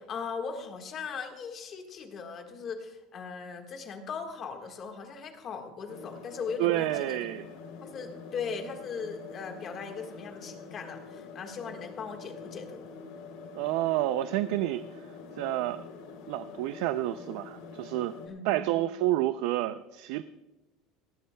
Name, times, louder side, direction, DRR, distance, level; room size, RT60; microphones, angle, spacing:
voice 1, 0.0-7.2 7.8-12.8 18.3-18.7, left 5 dB, 30° left, 4 dB, 1.6 m, -39 dB
sound 1, 5.9-18.3, left 5 dB, 70° left, 3.3 m, -46 dB
voice 2, 6.6-7.5 13.5-15.1 15.4-15.8 16.3-18.1 18.4-20.2, right 15 dB, 65° right, 12 dB, 0.4 m, -29 dB
18.5 x 18.0 x 2.3 m, 1.0 s
cardioid pair, 175°, 0 cm